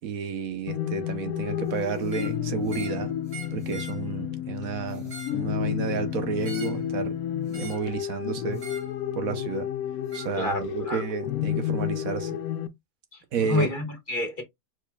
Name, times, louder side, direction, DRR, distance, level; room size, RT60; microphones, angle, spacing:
voice 1, 0.0-3.1 3.5-7.2 7.6-8.6 9.1-9.7 10.1-12.4 13.3-13.7, right 7 dB, 80° right, 1.3 m, -31 dB
sound 1, 0.7-12.7, left 10 dB, 85° left, 1.1 m, -31 dB
sound 2, 2.0-2.4 2.7-3.0 3.3-4.0 4.9-5.4 6.4-6.8 7.5-7.9 8.6-8.9 10.1-10.3, right 4 dB, 30° right, 2.4 m, -42 dB
voice 2, 10.4-11.0 13.1-14.4, left 2 dB, 35° left, 1.5 m, -29 dB
4.6 x 4.1 x 2.3 m
omnidirectional pair, 1.5 m